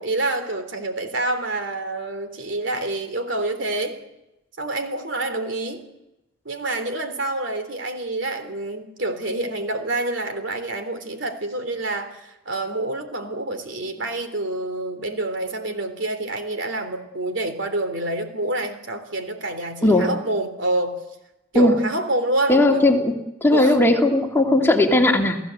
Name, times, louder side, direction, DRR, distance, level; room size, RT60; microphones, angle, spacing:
voice 1, 0.0-4.0 4.6-5.9 6.5-21.0 21.5-22.9 23.5-23.8, right 2 dB, 65° right, 7 dB, 3.6 m, -27 dB
voice 2, 22.5-23.1 23.4-25.4, left 2 dB, 10° left, 1 dB, 2.7 m, -17 dB
30.0 x 17.0 x 7.9 m, 0.94 s
head